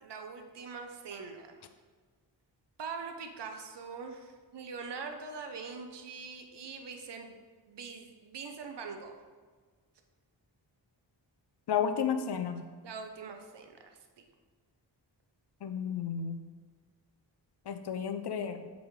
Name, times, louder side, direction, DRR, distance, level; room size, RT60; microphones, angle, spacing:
voice 1, 0.0-1.6 2.8-7.4 7.7-9.2 12.8-14.2, right 5 dB, 65° right, 5 dB, 0.8 m, -43 dB
voice 2, 11.7-12.7 15.6-16.4 17.7-18.7, left 7 dB, 60° left, 9 dB, 0.6 m, -32 dB
7.8 x 4.0 x 3.2 m, 1.5 s
cardioid pair, 60°, 44 cm